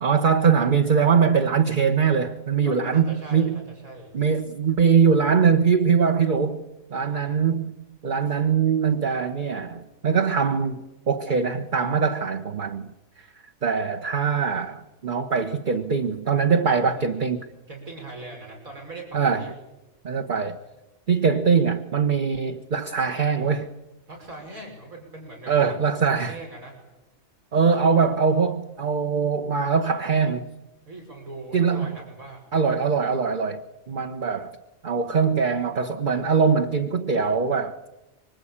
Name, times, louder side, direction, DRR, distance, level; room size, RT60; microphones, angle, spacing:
voice 1, 0.0-3.5 4.1-6.6 6.9-7.7 8.0-10.8 11.1-12.9 13.6-17.4 19.1-19.5 20.0-20.6 21.1-23.7 25.5-26.3 27.5-30.4 31.5-31.9 32.5-34.6 34.8-37.8, right 6 dB, 40° right, 1.2 m, -22 dB
voice 2, 2.6-4.1 6.9-7.4 16.7-17.2 17.7-19.5 24.1-25.7 26.2-26.7 30.9-32.4, right 2 dB, 80° right, 6.4 m, -41 dB
25.5 x 24.5 x 8.8 m
omnidirectional pair, 1.4 m